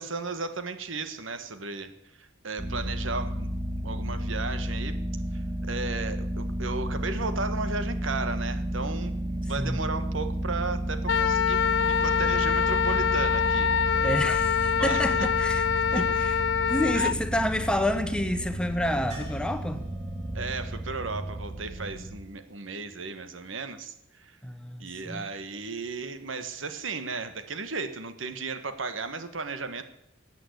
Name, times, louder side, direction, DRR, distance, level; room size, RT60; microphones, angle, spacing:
voice 1, 0.0-1.9 2.2-5.0 5.3-13.7 14.7-15.0 16.9-17.1 20.3-24.4 24.8-29.8, right 4 dB, 85° right, 1.5 m, -35 dB
sound 1, 2.6-22.2, right 1 dB, 20° right, 1.1 m, -32 dB
voice 2, 9.6-9.9 13.9-15.7 15.9-16.4 16.7-19.8 24.4-25.2, left 1 dB, 5° left, 1.0 m, -29 dB
Wind instrument woodwind instrument, 11.1-17.1, left 7 dB, 65° left, 0.5 m, -25 dB
sound 2, 19.1-23.0 25.6-25.7 26.0-26.1, equal, 40° right, 7.7 m, -51 dB
15.0 x 9.0 x 8.1 m
head